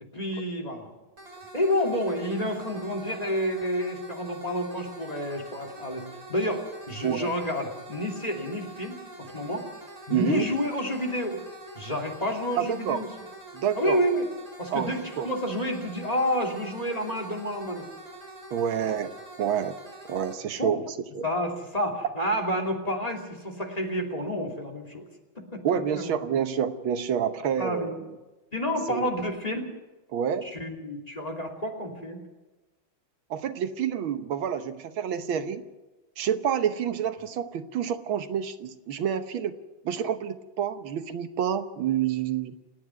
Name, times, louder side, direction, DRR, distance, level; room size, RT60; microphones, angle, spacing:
voice 1, 0.1-0.9 1.5-9.7 10.1-11.4 11.7-13.1 13.7-14.3 14.6-17.8 18.7-19.0 20.6-20.8 21.2-25.1 25.4-26.1 27.6-27.9 28.5-29.7 30.4-32.2, equal, 20° left, 3 dB, 2.9 m, -29 dB
sound 1, 1.2-20.3, right 1 dB, 45° right, 4.9 m, -45 dB
voice 2, 10.1-10.5 12.6-13.0 13.5-14.0 14.7-14.9 15.2-15.3 18.5-19.1 19.4-19.8 20.0-21.3 25.6-28.2 28.9-29.1 30.1-30.5 33.3-35.6 36.2-39.5 39.9-42.6, right 8 dB, 80° right, 9 dB, 1.8 m, -28 dB
29.0 x 9.7 x 9.4 m, 1.1 s
omnidirectional pair, 2.2 m